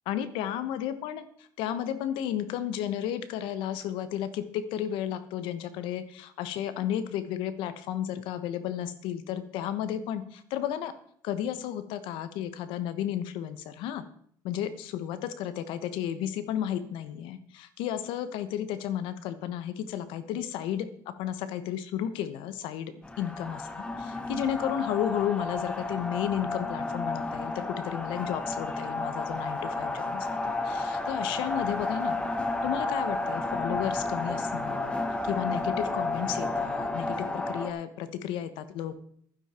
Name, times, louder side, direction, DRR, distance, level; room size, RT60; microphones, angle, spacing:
voice 1, 0.1-11.0 11.2-14.0 14.4-32.2 32.6-34.9 35.2-39.0, left 10 dB, 85° left, 12 dB, 1.1 m, -33 dB
sound 1, 23.0-37.7, left 2 dB, 10° left, 1.3 m, -32 dB
11.5 x 10.0 x 4.4 m, 0.62 s
cardioid pair, 110°, 8 cm